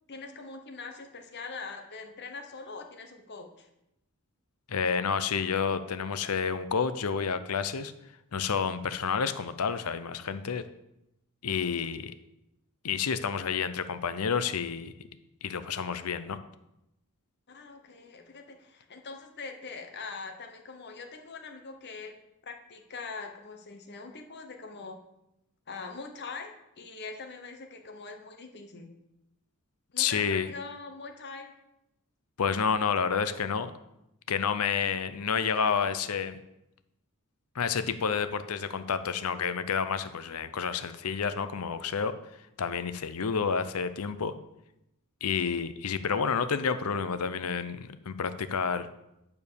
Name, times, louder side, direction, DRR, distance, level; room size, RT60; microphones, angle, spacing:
voice 1, 0.1-3.7 17.5-22.2 22.4-25.0 25.7-29.0 29.9-31.5, left 4 dB, 50° left, 4 dB, 1.1 m, -43 dB
voice 2, 4.7-7.9 8.3-10.7 11.4-12.1 12.8-14.9 15.4-16.4 30.0-30.5 32.4-33.7 34.3-36.4 37.5-42.2 42.6-44.3 45.2-48.9, left 6 dB, 85° left, 12 dB, 0.7 m, -29 dB
10.5 x 4.7 x 6.9 m, 0.86 s
head